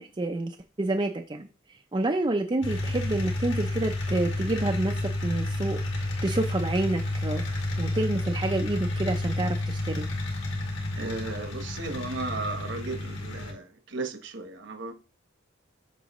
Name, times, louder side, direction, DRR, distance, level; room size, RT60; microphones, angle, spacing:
voice 1, 0.0-1.5 1.9-10.1, right 2 dB, 25° right, 0.5 m, -29 dB
sound 1, 2.6-13.5, left 1 dB, 65° left, 2.2 m, -30 dB
voice 2, 11.0-14.9, right 3 dB, 60° right, 1.1 m, -35 dB
8.5 x 6.1 x 3.1 m
head